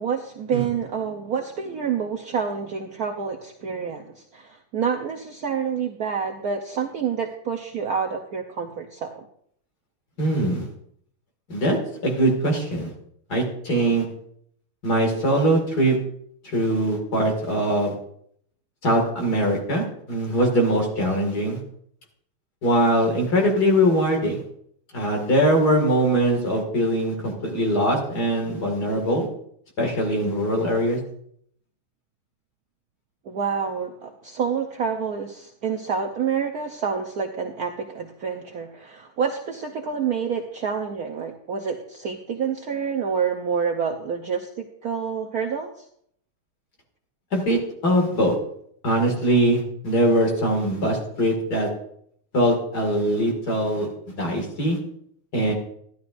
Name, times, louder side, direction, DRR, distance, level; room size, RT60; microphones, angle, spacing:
voice 1, 0.0-9.2 33.3-45.8, right 6 dB, 65° right, 3 dB, 0.9 m, -28 dB
voice 2, 10.2-10.7 11.5-11.8 12.0-12.9 13.3-14.0 14.8-16.0 16.4-17.9 18.8-21.6 22.6-24.4 24.9-29.3 29.8-31.0 47.3-48.3 48.8-51.7 52.3-53.9 54.2-54.8 55.3-55.5, right 1 dB, 50° left, 1 dB, 2.6 m, -22 dB
12.0 x 12.0 x 2.6 m, 0.68 s
omnidirectional pair, 2.3 m